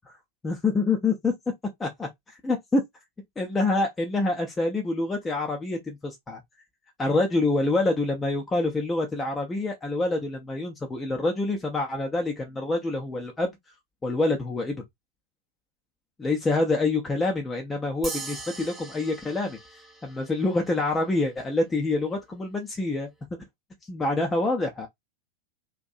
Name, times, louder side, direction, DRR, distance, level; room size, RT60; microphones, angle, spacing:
voice 1, 0.4-1.3 1.8-2.1 2.4-2.8 3.4-6.4 7.0-13.5 14.0-14.8 16.2-19.6 20.0-23.1 23.9-24.9, left 2 dB, 15° left, 0.6 m, -26 dB
sound 1, 18.0-20.8, right 3 dB, 10° right, 0.9 m, -40 dB
2.6 x 2.3 x 2.6 m
figure-of-eight pair, 90°, 0 cm